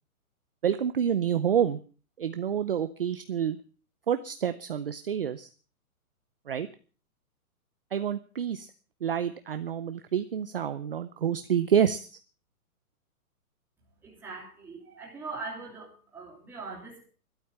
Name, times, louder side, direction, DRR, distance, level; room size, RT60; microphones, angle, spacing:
voice 1, 0.6-1.8 2.2-3.6 4.1-5.5 6.5-6.7 7.9-8.7 9.0-12.2, right 8 dB, 40° right, 0.6 m, -28 dB
voice 2, 14.0-17.1, right 3 dB, 5° right, 3.0 m, -41 dB
12.5 x 12.0 x 7.0 m
hypercardioid pair, 175°, 45 cm